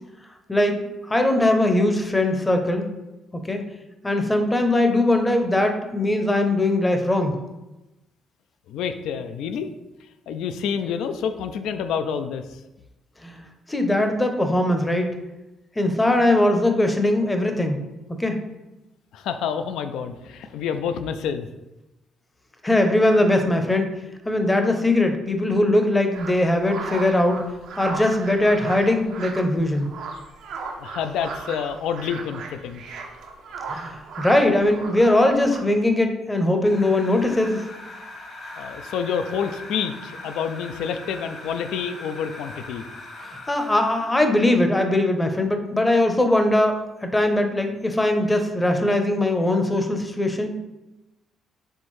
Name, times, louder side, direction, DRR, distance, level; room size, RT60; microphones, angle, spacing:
voice 1, 0.5-2.9 3.3-3.6 4.0-7.4 13.2-13.4 13.7-15.2 15.8-17.8 18.1-18.4 22.6-23.9 24.3-29.9 33.7-37.6 43.5-46.8 47.0-50.6, left 1 dB, 15° left, 5 dB, 0.6 m, -21 dB
voice 2, 8.7-9.7 10.3-12.6 19.1-21.5 30.8-32.8 38.6-42.8, left 7 dB, 85° left, 9 dB, 0.3 m, -28 dB
sound 1, 26.1-35.6, right 4 dB, 75° right, 0.6 m, -36 dB
sound 2, 36.6-44.2, left 2 dB, 60° left, 1.3 m, -40 dB
4.4 x 3.3 x 3.1 m, 1.0 s
cardioid pair, 80°, 0 cm